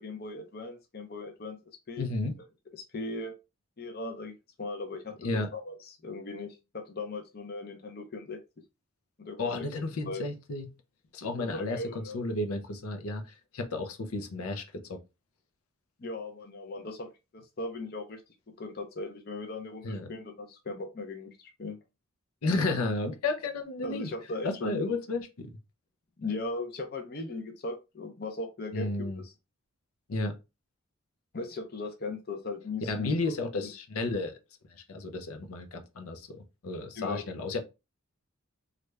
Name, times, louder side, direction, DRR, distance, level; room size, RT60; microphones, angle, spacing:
voice 1, 0.0-1.6 1.9-2.2 2.7-3.3 3.8-8.4 9.2-9.7 10.0-10.2 11.4-12.2 16.0-18.2 18.6-21.8 23.8-24.9 26.2-29.3 31.3-33.3 36.9-37.3, left 3 dB, 45° left, 0.6 m, -38 dB
voice 2, 2.0-2.4 5.2-5.5 9.4-10.7 11.1-15.0 19.8-20.1 22.4-24.1 24.4-25.5 28.7-29.2 30.1-30.4 32.9-34.4 34.7-37.6, left 2 dB, 85° left, 0.6 m, -32 dB
3.2 x 2.4 x 3.2 m
head